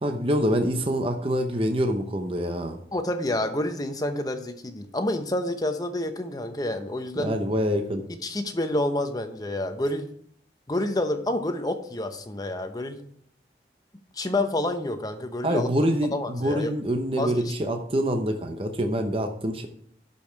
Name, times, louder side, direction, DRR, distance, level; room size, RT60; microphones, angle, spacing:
voice 1, 0.0-2.8 7.2-8.0 15.4-19.7, equal, 30° right, 5 dB, 0.8 m, -25 dB
voice 2, 2.9-7.3 8.2-10.1 10.7-13.0 14.1-15.7 16.1-16.7 17.2-17.5, left 1 dB, 20° left, 7 dB, 0.8 m, -28 dB
11.5 x 5.4 x 4.5 m, 0.65 s
head